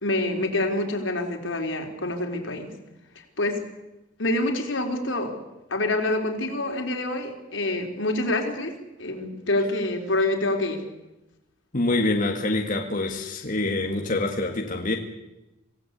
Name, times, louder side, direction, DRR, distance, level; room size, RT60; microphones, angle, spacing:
voice 1, 0.0-2.7 3.4-3.6 4.2-5.3 5.7-8.7 9.0-10.8, left 2 dB, 85° left, 2 dB, 4.2 m, -26 dB
voice 2, 11.7-15.0, left 2 dB, 45° left, 1 dB, 2.0 m, -25 dB
27.0 x 16.5 x 8.4 m, 0.98 s
head